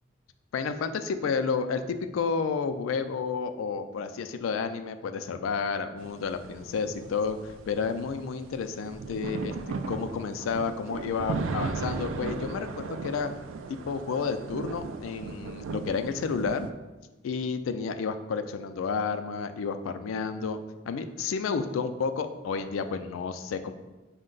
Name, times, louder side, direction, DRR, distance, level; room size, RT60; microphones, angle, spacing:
voice 1, 0.5-9.6 9.9-13.3 13.7-16.7 17.2-20.6 20.9-23.7, left 5 dB, 85° left, 9 dB, 0.3 m, -31 dB
sound 1, 6.0-16.7, right 4 dB, 80° right, 0.3 m, -37 dB
5.2 x 2.1 x 3.8 m, 1.1 s
head